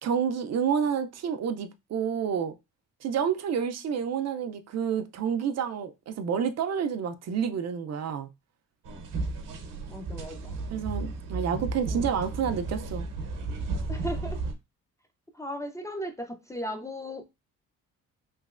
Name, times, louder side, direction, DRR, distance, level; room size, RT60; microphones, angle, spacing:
voice 1, 0.0-2.6 3.0-8.3 10.7-13.1, right 7 dB, 55° right, 0.5 m, -29 dB
sound 1, 8.9-14.5, right 3 dB, 75° right, 0.8 m, -34 dB
voice 2, 9.9-10.6 11.9-12.1 13.9-14.4 15.3-17.3, equal, 10° left, 0.4 m, -37 dB
3.1 x 2.8 x 2.4 m
cardioid pair, 110°, 32 cm